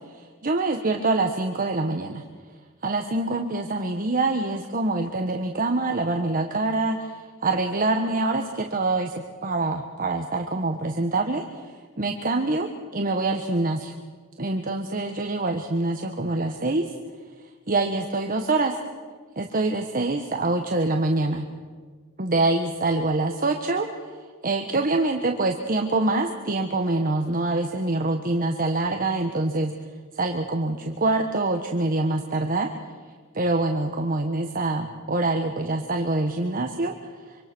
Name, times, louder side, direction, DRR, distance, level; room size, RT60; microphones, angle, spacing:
voice 1, 0.4-2.2 2.8-11.6 12.0-13.9 14.4-16.9 17.7-18.8 19.4-21.5 22.2-23.9 24.4-29.7 30.1-32.7 33.3-36.9, right 2 dB, 40° right, 4 dB, 1.4 m, -25 dB
25.5 x 25.5 x 6.2 m, 1.5 s
head